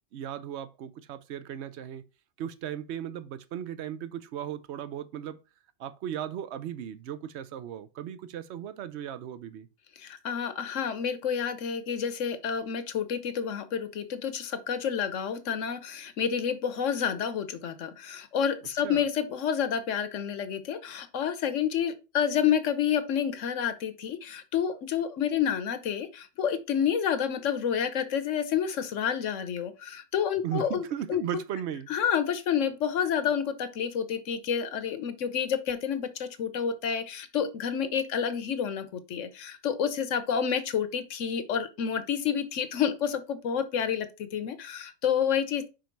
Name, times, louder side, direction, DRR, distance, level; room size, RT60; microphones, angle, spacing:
voice 1, 0.1-2.0 2.4-5.4 5.8-9.7 18.8-19.0 30.4-31.9, right 10 dB, 65° right, 0.9 m, -36 dB
voice 2, 10.0-30.8 31.1-31.2 31.9-45.7, left 8 dB, 75° left, 1.2 m, -29 dB
5.2 x 5.0 x 4.5 m
omnidirectional pair, 1.3 m